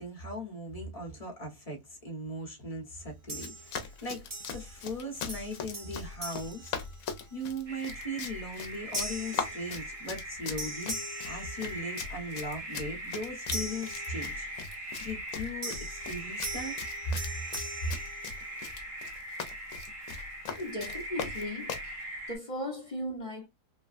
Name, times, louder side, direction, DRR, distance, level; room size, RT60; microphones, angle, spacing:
voice 1, 0.0-6.8 7.3-11.0 11.2-14.5 15.0-16.8 17.8-17.9, equal, 25° left, 0.9 m, -38 dB
Run, 3.3-21.9, left 6 dB, 65° left, 1.0 m, -41 dB
sound 1, 3.3-3.9 4.3-5.0 5.3-7.4 8.0-8.2 8.9-10.3 10.6-12.2 13.5-14.7 15.6-18.9, right 1 dB, 25° right, 1.0 m, -42 dB
sound 2, 7.7-22.4, right 1 dB, 55° right, 1.4 m, -41 dB
voice 2, 20.5-21.9 22.3-23.5, left 1 dB, 45° left, 0.5 m, -37 dB
3.3 x 2.2 x 2.4 m
omnidirectional pair, 1.7 m